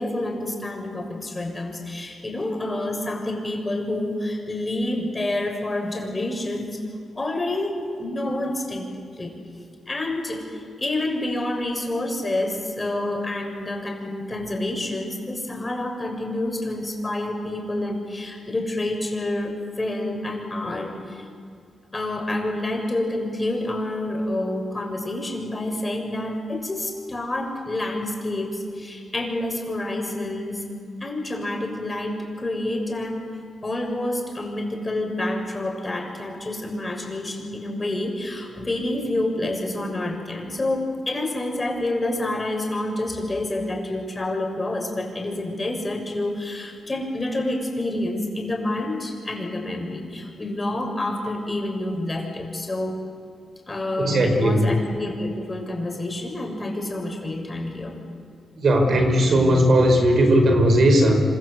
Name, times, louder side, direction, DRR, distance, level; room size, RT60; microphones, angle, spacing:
voice 1, 0.0-6.8 7.2-8.9 9.2-9.3 9.9-21.3 21.9-30.6 31.0-33.2 33.6-53.0 53.7-58.0, left 1 dB, 25° left, 2 dB, 7.0 m, -28 dB
voice 2, 54.0-54.6 58.6-61.2, right 1 dB, 60° right, 5 dB, 5.0 m, -17 dB
26.5 x 26.0 x 8.4 m, 2.4 s
cardioid pair, 65°, 0 cm